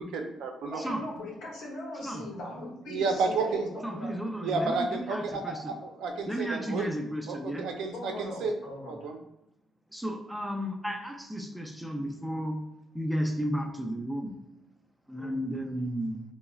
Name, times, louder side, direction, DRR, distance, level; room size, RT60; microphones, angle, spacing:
voice 1, 0.0-0.8 2.9-3.7 4.4-6.9 7.3-8.5 8.9-9.1, right 4 dB, 85° right, 3 dB, 0.4 m, -31 dB
voice 2, 0.7-4.1 7.9-9.1 15.2-15.4, left 1 dB, 80° left, -2 dB, 0.9 m, -40 dB
voice 3, 3.8-5.7 6.3-7.6 9.9-12.6 12.9-14.3 15.1-16.2, equal, 5° right, 2 dB, 0.4 m, -33 dB
3.6 x 2.0 x 2.3 m, 0.84 s
cardioid pair, 90°, 0 cm